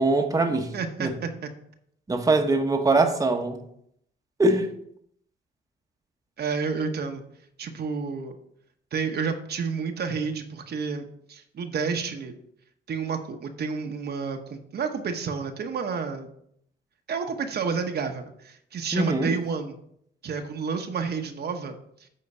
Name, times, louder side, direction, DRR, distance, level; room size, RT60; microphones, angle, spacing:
voice 1, 0.0-0.7 1.0-1.1 2.1-3.6 4.4-4.7 18.9-19.3, right 2 dB, 15° right, 4 dB, 1.0 m, -22 dB
voice 2, 0.7-1.5 6.4-7.2 7.6-8.4 8.9-12.3 12.9-16.3 17.1-19.8 20.2-22.1, right 5 dB, 55° right, 5 dB, 1.0 m, -30 dB
8.7 x 3.8 x 6.7 m, 0.71 s
cardioid pair, 90°, 20 cm